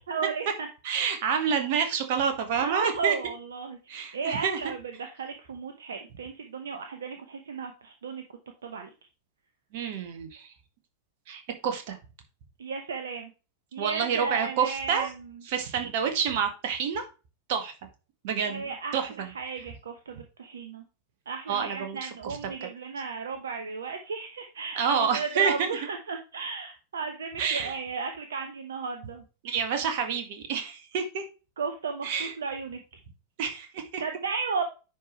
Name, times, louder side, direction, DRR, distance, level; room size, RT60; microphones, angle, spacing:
voice 1, 0.0-0.7 1.3-1.4 2.6-8.2 8.6-8.9 12.6-13.3 13.7-15.4 18.5-20.8 21.3-29.2 31.6-32.8 34.0-34.6, right 5 dB, 65° right, 6 dB, 1.0 m, -35 dB
voice 2, 0.8-3.2 3.9-4.6 9.7-10.5 11.3-12.0 13.8-15.1 15.5-17.1 17.5-17.7 18.2-18.7 18.9-19.3 21.5-22.4 24.8-25.8 27.4-27.7 29.4-31.3 32.0-32.3 33.4-34.0, right 6 dB, 50° right, 6 dB, 1.7 m, -28 dB
9.9 x 5.1 x 3.1 m, 0.32 s
figure-of-eight pair, 90°, 0 cm